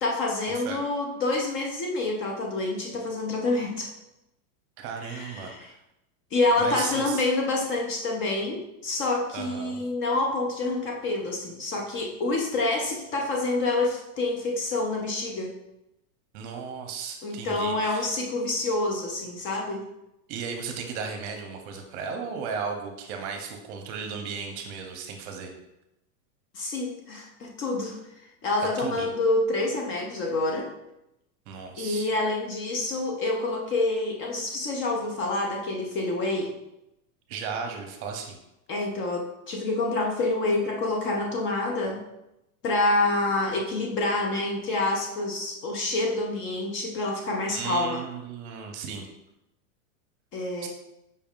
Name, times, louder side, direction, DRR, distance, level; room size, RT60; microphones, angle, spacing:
voice 1, 0.0-3.9 5.0-5.7 6.3-15.5 17.2-19.8 26.5-28.0 28.4-30.7 31.8-36.5 38.7-42.0 42.6-48.0 50.3-50.7, left 2 dB, 30° left, 0 dB, 0.5 m, -27 dB
voice 2, 4.8-5.8 6.6-7.3 9.3-9.8 16.3-18.1 20.3-25.5 28.6-29.1 31.5-32.1 37.3-38.4 47.5-49.1 50.6-50.7, right 6 dB, 50° right, 4 dB, 0.8 m, -35 dB
5.3 x 3.5 x 2.4 m, 0.88 s
supercardioid pair, 130°, 45 cm